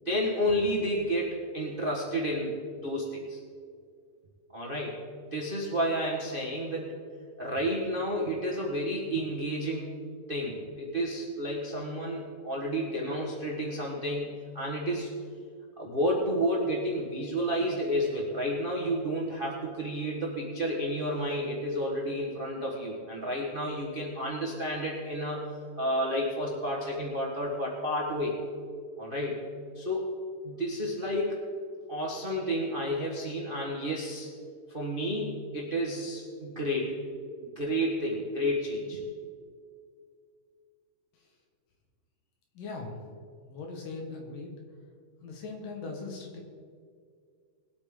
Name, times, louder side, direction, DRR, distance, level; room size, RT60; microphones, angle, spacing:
voice 1, 0.0-3.4 4.5-5.0 5.3-7.0 7.4-9.9 10.3-15.1 15.8-25.4 25.8-28.4 29.0-29.5 29.7-30.1 30.4-31.4 31.9-34.3 34.7-37.0 37.4-39.0, equal, 40° right, -2 dB, 0.7 m, -31 dB
voice 2, 42.6-43.0 43.4-44.6 45.2-46.4, left 3 dB, 80° left, 1 dB, 3.4 m, -40 dB
21.0 x 8.6 x 3.9 m, 2.1 s
omnidirectional pair, 3.8 m